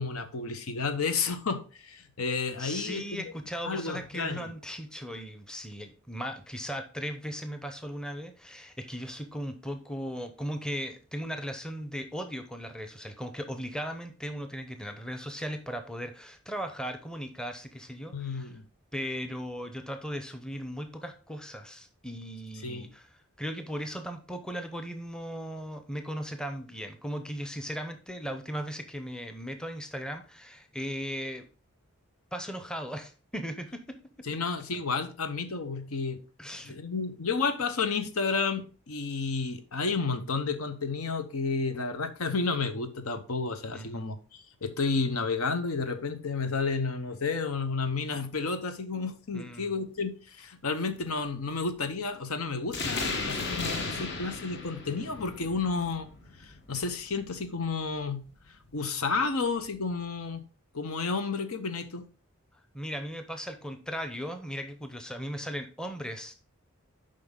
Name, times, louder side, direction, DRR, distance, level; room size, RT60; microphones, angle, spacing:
voice 1, 0.0-3.0 3.6-4.5 18.1-18.7 22.6-22.9 34.2-36.2 36.6-56.1 56.4-58.3 58.7-60.4 60.7-62.1, left 4 dB, 80° left, 0.9 m, -31 dB
voice 2, 2.6-18.6 18.9-23.1 23.4-31.5 32.3-34.0 34.3-34.4 36.4-36.8 43.7-44.1 49.3-49.7 62.7-66.3, equal, 5° left, 0.6 m, -37 dB
sound 1, 52.7-57.8, left 3 dB, 50° left, 1.2 m, -35 dB
7.6 x 5.2 x 3.8 m
head